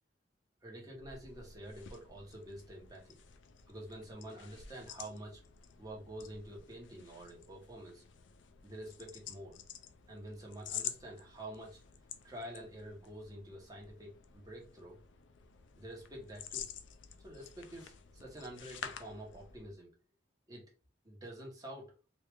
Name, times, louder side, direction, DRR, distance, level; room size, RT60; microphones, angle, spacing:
voice 1, 0.6-3.2 3.7-5.4 5.8-8.0 8.6-9.6 10.1-11.8 12.2-15.0 15.8-16.7 17.2-19.9 20.5-20.7 21.0-22.0, right 1 dB, 20° right, 1.2 m, -48 dB
sound 1, 0.9-19.8, left 8 dB, 85° left, 0.5 m, -49 dB
3.0 x 2.8 x 3.3 m
head